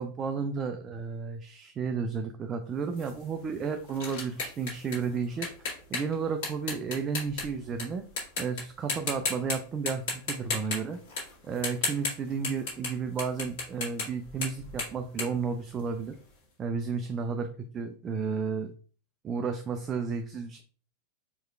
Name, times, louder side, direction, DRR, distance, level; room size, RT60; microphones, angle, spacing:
voice 1, 0.0-5.5 5.9-8.0 8.4-11.0 11.4-16.1 16.6-18.7 19.2-20.6, right 5 dB, 25° right, 6 dB, 0.4 m, -32 dB
sound 1, 3.0-7.8 8.2-8.6 8.9-9.6 9.9-16.2, left 4 dB, 50° left, 1.9 m, -34 dB
4.6 x 3.1 x 2.3 m, 0.41 s
figure-of-eight pair, 90°, 0 cm